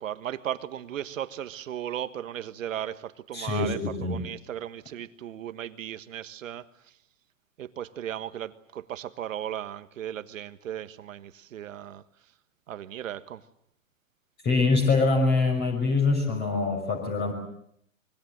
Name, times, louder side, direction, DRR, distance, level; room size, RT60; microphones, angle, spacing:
voice 1, 0.0-3.8 4.1-6.6 7.6-12.0 12.7-13.4, right 11 dB, 70° right, 12 dB, 1.6 m, -36 dB
voice 2, 3.3-4.2 14.4-17.3, left 3 dB, 25° left, 3 dB, 6.1 m, -24 dB
25.0 x 23.5 x 7.9 m, 0.70 s
hypercardioid pair, 130°, 40 cm